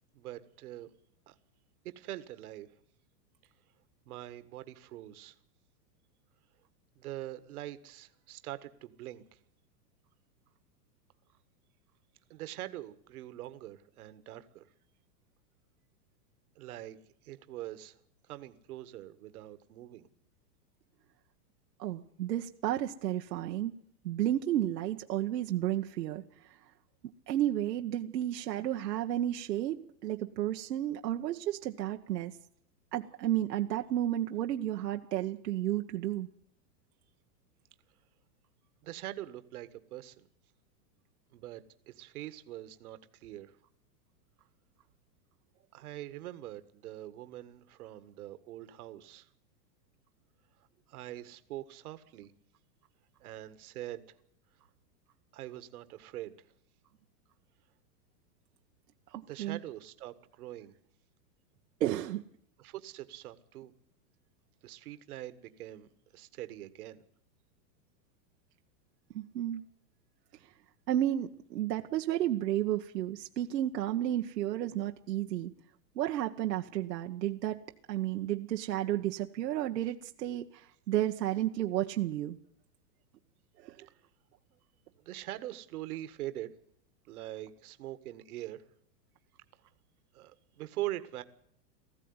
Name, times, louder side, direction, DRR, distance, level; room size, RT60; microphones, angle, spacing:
voice 1, 0.1-0.9 1.3-1.4 1.8-2.7 4.1-5.4 7.0-9.4 12.3-14.7 16.6-17.0 17.2-18.0 18.3-20.1 38.8-40.3 41.3-43.5 45.7-49.3 50.9-52.3 53.2-54.0 55.3-56.4 59.3-60.7 62.6-63.7 64.6-67.0 84.8-86.5 87.1-88.6 90.1-91.2, right 14 dB, 65° right, 12 dB, 1.8 m, -43 dB
voice 2, 21.8-23.7 24.0-26.6 27.3-32.3 32.9-36.3 59.1-59.6 61.8-62.2 69.1-69.6 70.9-75.5 75.9-77.6 77.9-82.4 83.6-83.9, right 12 dB, 85° right, 3 dB, 1.4 m, -32 dB
19.0 x 15.0 x 9.7 m, 0.69 s
supercardioid pair, 160°, 48 cm